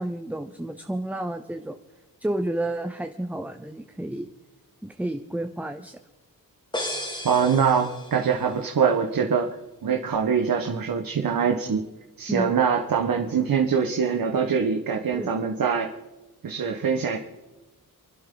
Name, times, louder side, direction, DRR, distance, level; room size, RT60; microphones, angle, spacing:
voice 1, 0.0-1.8 2.2-4.3 4.8-6.0 12.3-12.5 15.1-15.3, right 1 dB, 5° right, 7 dB, 0.6 m, -31 dB
sound 1, 6.7-8.5, left 1 dB, 10° left, 2.6 m, -34 dB
voice 2, 7.2-9.5 9.8-11.8 12.2-15.9 16.4-17.2, right 6 dB, 65° right, 2 dB, 1.5 m, -23 dB
29.5 x 12.0 x 3.9 m, 1.1 s
wide cardioid pair, 155°, 36 cm